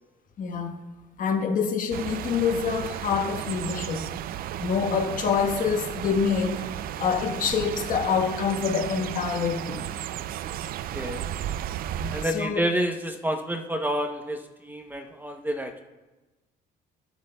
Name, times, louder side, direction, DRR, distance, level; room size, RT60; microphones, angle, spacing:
voice 1, 0.4-0.8 1.2-4.0 4.6-6.6 7.0-9.9 12.0-12.6, left 6 dB, 50° left, 5 dB, 1.2 m, -26 dB
sound 1, 1.9-12.3, right 11 dB, 60° right, 0.4 m, -34 dB
voice 2, 10.9-11.3 12.1-15.8, equal, 10° right, 5 dB, 0.7 m, -29 dB
19.0 x 7.8 x 2.2 m, 1.1 s
cardioid pair, 110°, 17 cm